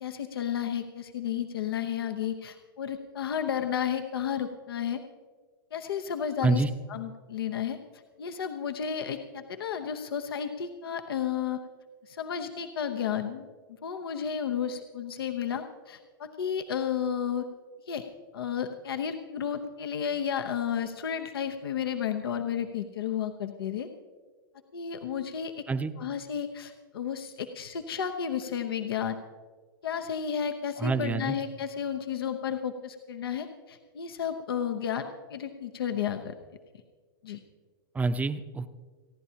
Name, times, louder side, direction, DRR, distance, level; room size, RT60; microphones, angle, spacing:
voice 1, 0.0-5.0 5.7-6.6 6.9-7.8 8.2-11.6 12.0-13.4 13.8-17.5 17.9-18.1 18.3-23.9 24.7-25.6 26.0-29.2 29.8-36.3 37.2-37.4, left 8 dB, 80° left, 6 dB, 0.9 m, -32 dB
voice 2, 30.8-31.3 37.9-38.7, right 3 dB, 10° right, 10 dB, 0.7 m, -27 dB
29.0 x 11.0 x 2.9 m, 1.5 s
hypercardioid pair, 115°, 12 cm